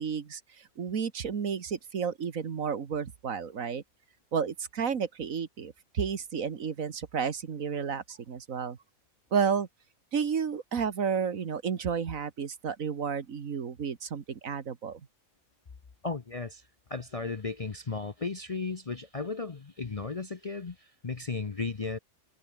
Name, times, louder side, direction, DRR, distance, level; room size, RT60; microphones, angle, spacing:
voice 1, 0.0-3.8 4.3-8.8 9.3-9.7 10.1-15.0, right 6 dB, 70° right, 1.9 m, -32 dB
voice 2, 16.0-16.6 16.9-22.0, left 4 dB, 30° left, 0.7 m, -35 dB
omnidirectional pair, 1.5 m